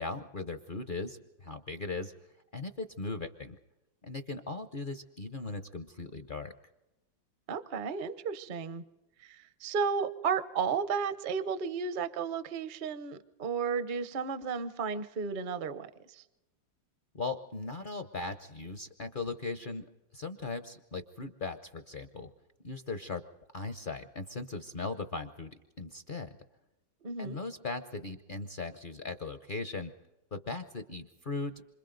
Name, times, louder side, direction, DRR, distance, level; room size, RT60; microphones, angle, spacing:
voice 1, 0.0-2.1 2.5-3.6 4.0-6.5 17.1-19.8 20.1-22.3 22.6-23.2 23.5-26.3 27.2-29.9 30.3-31.5, left 3 dB, 50° left, 8 dB, 0.6 m, -38 dB
voice 2, 7.5-8.8 9.2-16.2 27.0-27.4, right 6 dB, 45° right, 12 dB, 0.6 m, -33 dB
28.0 x 25.5 x 3.9 m, 0.98 s
omnidirectional pair, 2.0 m